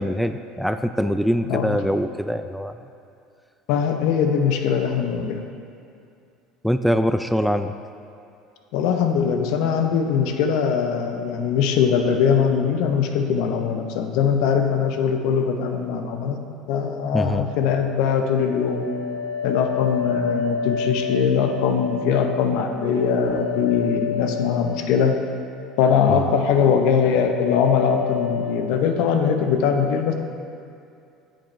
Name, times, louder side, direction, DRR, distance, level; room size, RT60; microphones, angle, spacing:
voice 1, 0.0-2.8 6.6-7.7 17.1-17.5 26.1-26.3, equal, ahead, 9 dB, 0.3 m, -23 dB
voice 2, 1.5-1.8 3.7-5.4 8.7-16.4 16.7-18.9 19.4-25.2 25.8-30.1, left 6 dB, 70° left, 5 dB, 0.7 m, -21 dB
sound 1, 17.7-25.9 26.2-26.7 27.0-28.8, left 6 dB, 50° left, 1.1 m, -30 dB
8.5 x 7.7 x 3.3 m, 2.5 s
hypercardioid pair, 85°, 0 cm